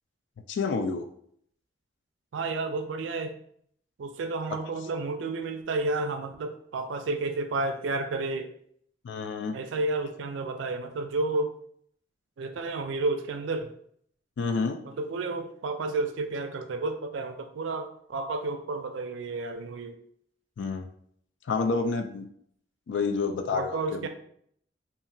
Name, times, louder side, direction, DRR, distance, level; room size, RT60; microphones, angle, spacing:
voice 1, 0.5-1.1 9.0-9.6 14.4-14.8 20.6-20.9 21.5-22.3 22.9-24.1, left 4 dB, 75° left, 6 dB, 0.3 m, -29 dB
voice 2, 2.3-3.4 4.0-8.5 9.5-11.5 12.4-13.7 14.9-20.0 23.5-24.1, right 3 dB, 85° right, 7 dB, 0.4 m, -31 dB
2.8 x 2.4 x 2.6 m, 0.66 s
head